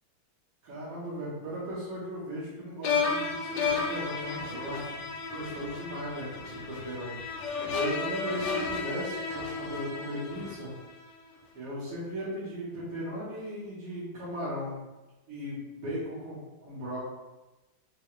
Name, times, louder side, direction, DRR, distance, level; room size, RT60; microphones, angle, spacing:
voice 1, 0.6-7.4 7.7-10.7 11.5-14.8 15.3-17.0, equal, 70° right, -11 dB, 1.9 m, -37 dB
sound 1, 2.8-11.0, left 4 dB, 75° left, 1.0 m, -33 dB
6.1 x 2.2 x 2.4 m, 1.1 s
omnidirectional pair, 2.3 m